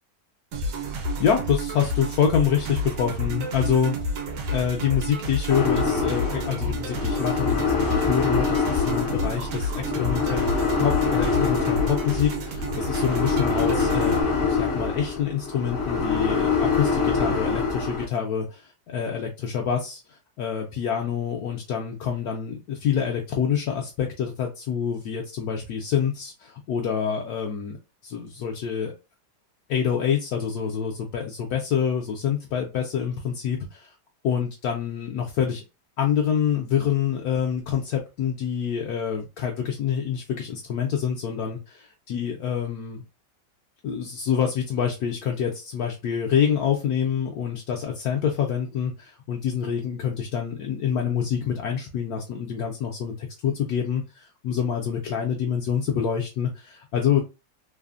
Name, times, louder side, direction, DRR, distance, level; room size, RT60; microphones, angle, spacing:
sound 1, 0.5-14.2, equal, 80° right, 1.3 m, -30 dB
voice 1, 1.2-4.2 4.5-10.5 10.8-20.0 20.4-27.8 28.0-28.9 29.7-33.9 34.2-35.6 36.0-43.0 43.8-57.2, left 8 dB, 70° left, 0 dB, 1.0 m, -26 dB
sound 2, 5.5-18.0, left 5 dB, 55° left, 0.6 m, -25 dB
3.2 x 2.1 x 2.3 m, 0.27 s
omnidirectional pair, 1.8 m